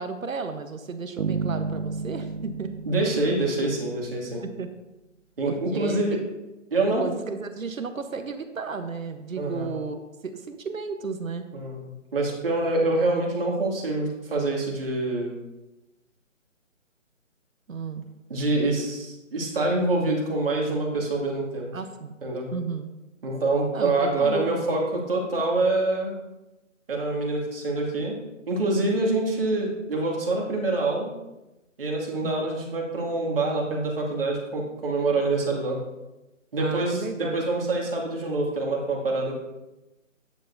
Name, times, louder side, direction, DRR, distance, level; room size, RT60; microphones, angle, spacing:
voice 1, 0.0-2.7 4.4-4.7 5.4-6.2 6.8-10.0 10.2-11.4 17.7-18.0 18.6-18.7 21.7-22.1 22.5-22.9 23.7-24.6 32.2-32.5 36.6-37.5, right 5 dB, 90° right, 8 dB, 1.1 m, -33 dB
sound 1, 1.2-4.2, right 4 dB, 70° right, 0.9 m, -32 dB
voice 2, 2.9-4.4 5.4-6.2 6.7-7.0 9.4-9.7 11.5-11.8 12.1-15.3 18.3-21.7 22.2-22.5 23.2-26.1 26.9-28.2 28.5-31.1 31.8-35.8 36.5-39.4, right 2 dB, 45° right, -2 dB, 2.4 m, -26 dB
9.7 x 9.2 x 2.7 m, 1.0 s
hypercardioid pair, 175°, 39 cm